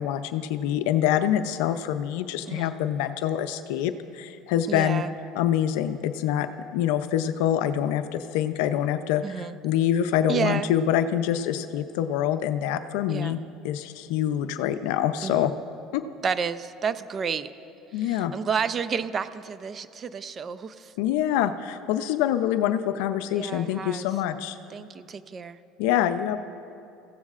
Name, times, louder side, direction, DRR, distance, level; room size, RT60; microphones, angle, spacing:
voice 1, 0.0-5.0 5.3-6.5 6.7-13.4 13.6-15.5 15.9-16.0 17.9-18.3 21.0-24.6 25.8-26.4, left 10 dB, 80° left, 9 dB, 0.5 m, -25 dB
voice 2, 4.7-5.1 9.2-9.6 10.3-10.7 13.1-13.4 15.2-15.5 16.2-17.5 18.0-20.9 23.3-24.1 24.7-25.6, right 6 dB, 35° right, 13 dB, 0.5 m, -30 dB
24.0 x 15.5 x 2.5 m, 2.8 s
supercardioid pair, 105°, 0 cm